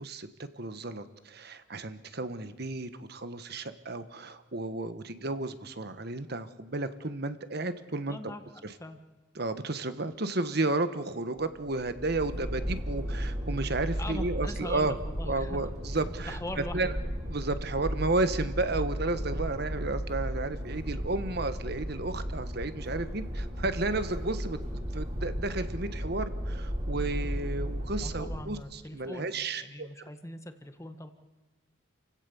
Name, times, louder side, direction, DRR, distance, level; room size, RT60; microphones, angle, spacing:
voice 1, 0.0-8.2 8.6-8.7 9.3-14.9 15.2-16.9 17.3-24.6 24.9-29.9, right 2 dB, 55° right, 11 dB, 1.3 m, -32 dB
voice 2, 8.1-8.4 8.8-9.0 14.0-15.7 16.3-17.0 28.0-31.1, left 1 dB, 15° left, 7 dB, 1.5 m, -41 dB
sound 1, 11.4-28.7, equal, 35° right, 4.4 m, -35 dB
29.0 x 16.5 x 7.1 m, 1.2 s
head